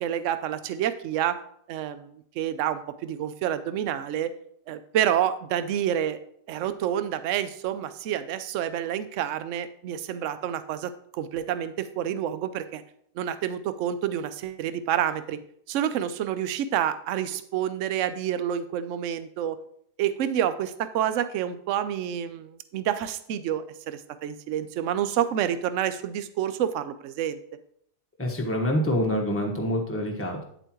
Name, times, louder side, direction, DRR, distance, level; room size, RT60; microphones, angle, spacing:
voice 1, 0.0-1.4 1.7-4.3 4.7-6.2 6.5-12.8 13.2-15.4 15.7-19.6 20.0-27.4, right 10 dB, 65° right, 12 dB, 0.8 m, -28 dB
voice 2, 28.2-30.4, equal, 10° left, 0 dB, 1.2 m, -26 dB
9.1 x 8.0 x 3.0 m, 0.67 s
omnidirectional pair, 1.7 m